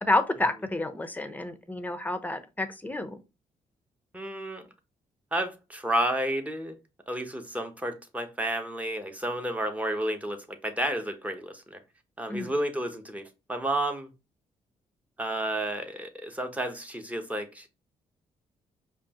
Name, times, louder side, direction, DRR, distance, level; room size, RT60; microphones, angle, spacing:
voice 1, 0.0-3.2 12.3-12.5, left 2 dB, 10° left, 0.7 m, -29 dB
voice 2, 4.1-4.6 5.3-6.8 7.1-11.8 12.2-14.1 15.2-17.7, right 1 dB, 10° right, 0.9 m, -31 dB
5.0 x 2.4 x 2.9 m
cardioid pair, 75°, 13 cm